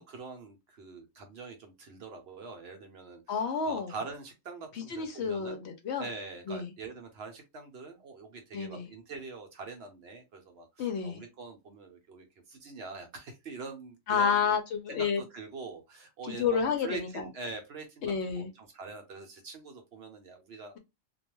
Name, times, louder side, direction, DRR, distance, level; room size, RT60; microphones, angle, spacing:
voice 1, 0.0-5.6 6.0-14.6 14.9-20.7, right 4 dB, 60° right, 4 dB, 0.7 m, -44 dB
voice 2, 3.3-3.9 4.9-6.1 6.5-6.7 8.5-8.9 10.8-11.2 14.1-15.2 16.3-17.3 18.0-18.5, left 6 dB, 65° left, 6 dB, 0.8 m, -30 dB
2.3 x 2.2 x 3.0 m, 0.23 s
omnidirectional pair, 1.3 m